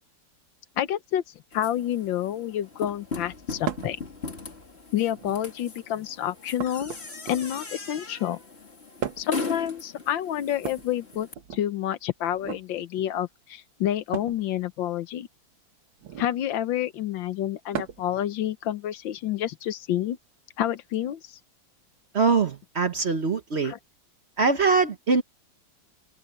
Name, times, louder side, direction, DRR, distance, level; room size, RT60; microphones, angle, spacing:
voice 1, 0.8-1.2 1.5-4.0 4.9-7.0 7.2-8.4 9.2-15.3 16.2-20.2 20.6-21.4 23.6-23.8, left 11 dB, 85° left, 1.6 m, -29 dB
sound 1, 1.5-11.3, left 4 dB, 35° left, 2.5 m, -39 dB
sound 2, 3.7-4.0 5.1-5.6 6.6-7.7 9.0-9.4 10.6-11.6 12.3-12.7 14.1-14.4 16.0-16.4 17.7-18.1 19.6-19.7 20.9-21.0, right 9 dB, 85° right, 2.1 m, -36 dB
voice 2, 22.1-23.7 24.4-25.2, right 4 dB, 40° right, 1.2 m, -23 dB
open air
omnidirectional pair, 2.1 m